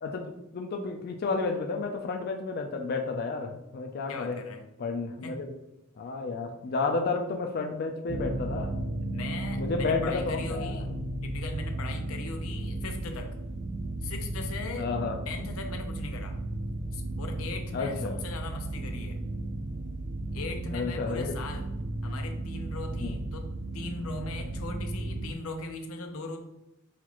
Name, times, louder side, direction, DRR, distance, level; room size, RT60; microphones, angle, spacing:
voice 1, 0.0-4.4 4.8-5.5 6.0-8.7 9.6-10.8 14.8-15.2 17.7-18.2 20.7-21.3 23.0-23.1, left 4 dB, 50° left, 3 dB, 0.4 m, -31 dB
voice 2, 4.1-4.6 5.2-5.4 9.1-10.9 11.2-13.3 14.0-14.9 15.3-16.4 16.9-19.2 20.3-21.7 22.0-23.5 23.7-26.4, left 3 dB, 90° left, 4 dB, 0.6 m, -39 dB
sound 1, 8.1-25.3, right 2 dB, 40° right, 0.3 m, -34 dB
5.6 x 2.4 x 3.0 m, 0.94 s
head